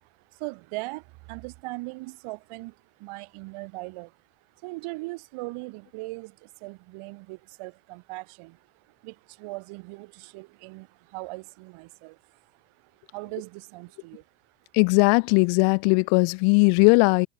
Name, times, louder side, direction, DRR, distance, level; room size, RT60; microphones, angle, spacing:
voice 1, 0.4-1.0 1.3-2.7 3.0-4.1 4.6-6.3 6.6-8.5 9.0-9.1 9.4-10.9 11.1-12.1 13.1-14.2, right 24 dB, 75° right, 2.1 m, -38 dB
voice 2, 14.7-17.3, left 39 dB, 85° left, 0.7 m, -19 dB
cardioid pair, 125°, 50 cm